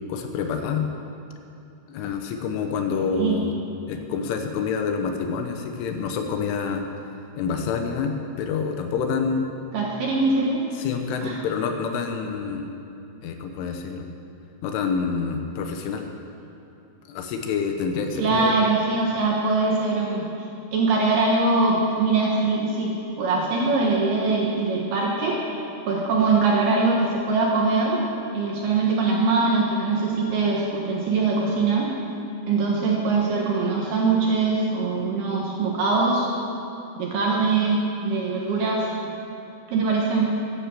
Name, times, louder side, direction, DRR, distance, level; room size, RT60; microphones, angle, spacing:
voice 1, 0.1-0.9 1.9-3.5 3.9-6.8 7.4-9.5 10.8-12.7 13.2-14.1 14.6-16.1 17.1-18.5, left 5 dB, 75° left, 5 dB, 3.3 m, -27 dB
voice 2, 2.9-3.4 9.7-10.6 11.2-11.4 18.2-20.3 20.7-28.0 28.3-31.9 32.5-36.3 37.0-38.8 39.7-40.4, right 3 dB, 70° right, -2 dB, 2.6 m, -22 dB
14.0 x 10.5 x 7.6 m, 2.9 s
omnidirectional pair, 5.9 m